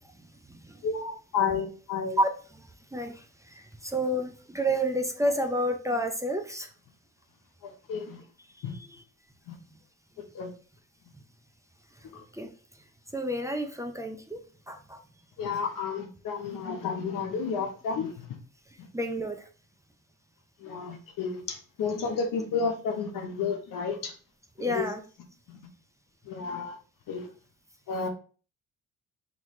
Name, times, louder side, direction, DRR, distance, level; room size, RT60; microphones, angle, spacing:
voice 1, 0.2-0.8 2.2-2.3 2.6-6.7 8.6-9.0 9.6-9.7 12.3-12.5 13.1-14.4 14.7-15.0 18.9-19.5 24.6-25.0, equal, 10° right, 4 dB, 0.5 m, -30 dB
voice 2, 0.8-2.2 7.6-8.2 8.6-8.7 9.5-9.6 10.3-10.5 12.1-12.2 15.4-18.1 18.8-18.9 20.6-24.1 24.6-24.9 26.3-26.8 27.1-27.3 27.9-28.1, left 5 dB, 75° left, 4 dB, 1.0 m, -31 dB
3.9 x 3.0 x 3.1 m, 0.38 s
cardioid pair, 85°, 32 cm